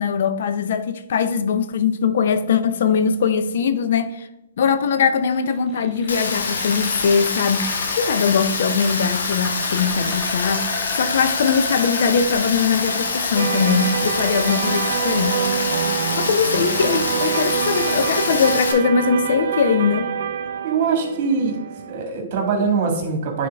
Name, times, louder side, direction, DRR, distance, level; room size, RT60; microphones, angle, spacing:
voice 1, 0.0-4.3 4.6-15.4 16.2-20.1, left 6 dB, 65° left, 0.6 m, -21 dB
sound 1, 5.6-17.4, left 1 dB, ahead, 1.2 m, -36 dB
Rain, 6.1-18.7, left 4 dB, 85° left, 1.1 m, -25 dB
sound 2, 13.3-22.0, right 8 dB, 70° right, 0.5 m, -26 dB
voice 2, 20.6-21.6 21.9-23.5, right 5 dB, 50° right, 1.8 m, -22 dB
9.2 x 3.8 x 3.4 m
hypercardioid pair, 140°, 0 cm